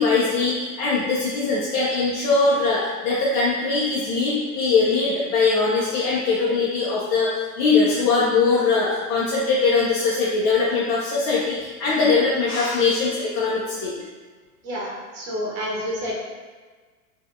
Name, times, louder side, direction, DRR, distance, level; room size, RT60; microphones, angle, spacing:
voice 1, 0.0-13.9, left 4 dB, 30° left, -7 dB, 0.4 m, -21 dB
voice 2, 14.6-16.2, equal, 50° right, -4 dB, 1.3 m, -29 dB
3.7 x 2.4 x 2.6 m, 1.4 s
hypercardioid pair, 115°, 47 cm